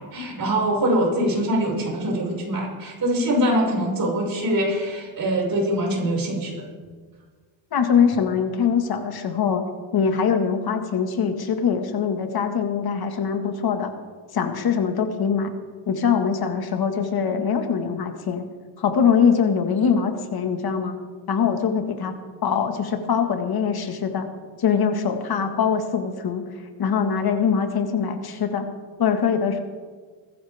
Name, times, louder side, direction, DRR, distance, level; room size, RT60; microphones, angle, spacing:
voice 1, 0.1-6.6, right 1 dB, 45° right, -2 dB, 6.0 m, -23 dB
voice 2, 7.7-9.6 9.9-13.9 14.3-15.5 15.9-18.5 18.8-21.0 21.3-22.2 22.4-24.3 24.6-26.5 26.8-28.7 29.0-29.6, left 6 dB, 45° left, 5 dB, 1.9 m, -22 dB
19.5 x 15.5 x 3.6 m, 1.5 s
cardioid pair, 120°, 49 cm